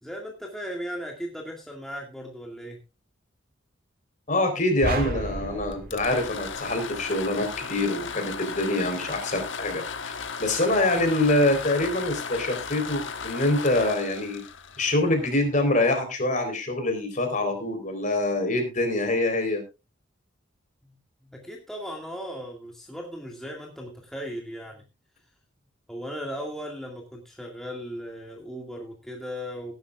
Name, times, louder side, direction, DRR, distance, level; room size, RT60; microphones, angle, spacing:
voice 1, 0.0-2.8 20.8-20.9 21.2-24.8 25.9-29.7, equal, ahead, -1 dB, 2.1 m, -37 dB
voice 2, 4.3-14.4 14.8-19.6, left 2 dB, 40° left, 6 dB, 4.0 m, -25 dB
sound 1, 4.8-7.2, right 2 dB, 50° right, 1.5 m, -32 dB
sound 2, 5.7-15.5, left 5 dB, 65° left, 1.3 m, -36 dB
19.0 x 10.5 x 2.5 m, 0.27 s
head